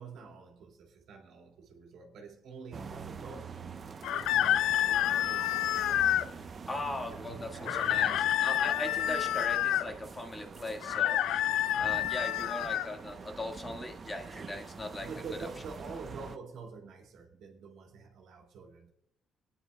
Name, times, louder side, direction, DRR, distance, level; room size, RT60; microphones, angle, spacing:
voice 1, 0.0-6.0 7.1-8.4 8.8-8.9 11.7-12.5 15.0-18.9, right 5 dB, 80° right, 2.0 m, -47 dB
sound 1, 2.7-16.4, right 5 dB, 45° right, 0.7 m, -45 dB
sound 2, 4.0-6.3 7.7-9.9 10.8-12.9, left 12 dB, 85° left, 0.4 m, -28 dB
voice 2, 6.7-11.2 11.8-15.1 15.4-15.5, left 2 dB, 25° left, 1.7 m, -39 dB
22.5 x 9.5 x 2.2 m
cardioid pair, 90°, 0 cm